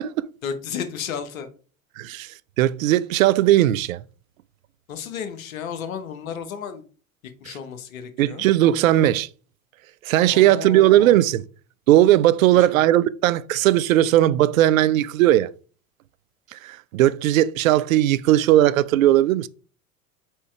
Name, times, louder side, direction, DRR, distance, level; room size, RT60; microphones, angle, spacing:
voice 1, 0.4-1.5 4.9-6.8 7.4-8.4 10.3-11.2 12.5-12.8, left 7 dB, 70° left, 1.2 m, -33 dB
voice 2, 2.0-4.0 8.2-9.3 10.0-11.4 11.9-15.5 16.5-19.5, right 13 dB, 70° right, 0.5 m, -18 dB
4.7 x 4.5 x 4.4 m
figure-of-eight pair, 80°, 42 cm